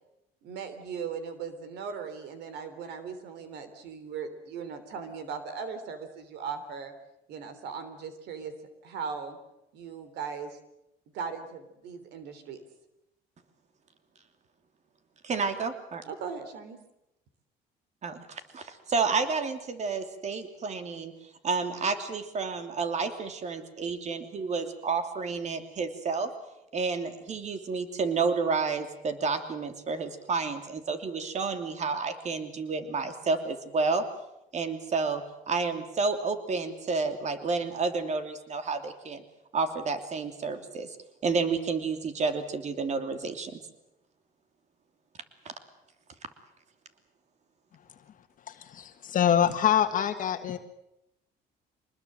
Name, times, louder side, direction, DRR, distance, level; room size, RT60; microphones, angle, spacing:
voice 1, 0.4-6.9 7.3-8.5 8.8-9.4 9.7-10.6 11.1-12.6 16.0-16.8, right 6 dB, 80° right, 11 dB, 3.3 m, -38 dB
voice 2, 15.2-16.0 18.0-21.1 21.4-26.3 26.7-34.0 34.5-39.2 39.5-41.0 41.2-43.6 45.4-45.5, right 4 dB, 45° right, 8 dB, 3.0 m, -30 dB
voice 3, 48.5-50.6, left 9 dB, 50° left, 7 dB, 1.6 m, -25 dB
24.5 x 20.5 x 7.6 m, 0.87 s
cardioid pair, 110°, 17 cm